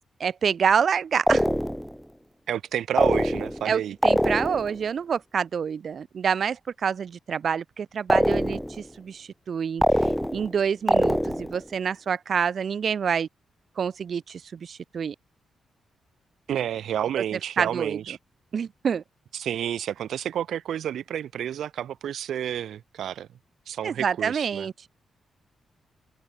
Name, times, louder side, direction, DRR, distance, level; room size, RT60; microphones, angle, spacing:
voice 1, 0.2-1.5 3.6-13.3 13.8-15.2 17.6-18.2 18.5-19.0 23.8-24.9, right 7 dB, 60° right, 1.8 m, -27 dB
sound 1, 1.3-2.0 3.0-3.7 4.0-4.8 8.1-8.8 9.8-10.5 10.9-11.6, equal, ahead, 2.1 m, -23 dB
voice 2, 2.5-3.9 16.5-18.2 19.3-23.3 23.7-24.7, right 10 dB, 80° right, 2.4 m, -30 dB
cardioid pair, 95°, 0 cm